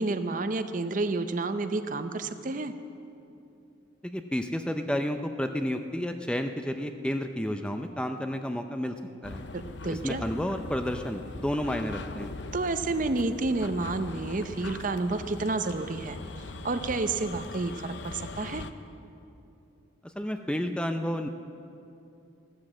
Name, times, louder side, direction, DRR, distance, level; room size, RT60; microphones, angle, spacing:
voice 1, 0.0-2.7 9.5-10.2 12.5-18.7, right 3 dB, 40° right, 10 dB, 0.6 m, -30 dB
voice 2, 4.0-9.0 9.2-9.4 10.0-12.3 20.0-21.3, equal, 5° left, 6 dB, 0.5 m, -31 dB
sound 1, 9.2-18.7, left 3 dB, 60° left, 0.6 m, -41 dB
15.0 x 12.5 x 7.4 m, 2.7 s
head